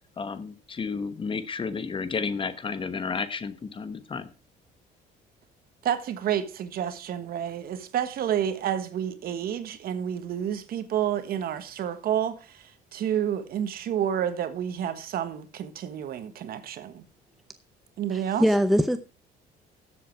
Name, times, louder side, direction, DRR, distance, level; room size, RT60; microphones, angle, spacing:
voice 1, 0.2-4.3, left 5 dB, 30° left, 1.2 m, -32 dB
voice 2, 5.8-17.0 18.0-18.5, right 9 dB, 60° right, 1.5 m, -29 dB
voice 3, 18.1-19.0, equal, ahead, 0.6 m, -22 dB
13.5 x 7.6 x 4.6 m
cardioid pair, 110°, 17 cm